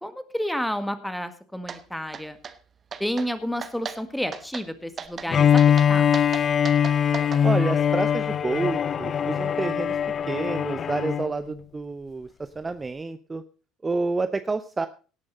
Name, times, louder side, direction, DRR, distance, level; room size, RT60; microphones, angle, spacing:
voice 1, 0.0-2.4 3.0-6.1, equal, 5° left, 10 dB, 1.7 m, -30 dB
sound 1, 1.7-1.8 2.1-2.6 2.9-3.3 3.6-4.0 4.3-4.7 5.0-5.3 5.6-7.4, right 6 dB, 35° right, 1.1 m, -36 dB
Bowed string instrument, 5.3-11.3, left 8 dB, 40° left, 0.5 m, -22 dB
voice 2, 7.4-10.0 10.3-13.4 13.8-14.9, right 3 dB, 20° right, 11 dB, 0.7 m, -29 dB
17.5 x 8.7 x 4.1 m, 0.36 s
hypercardioid pair, 65°, 0 cm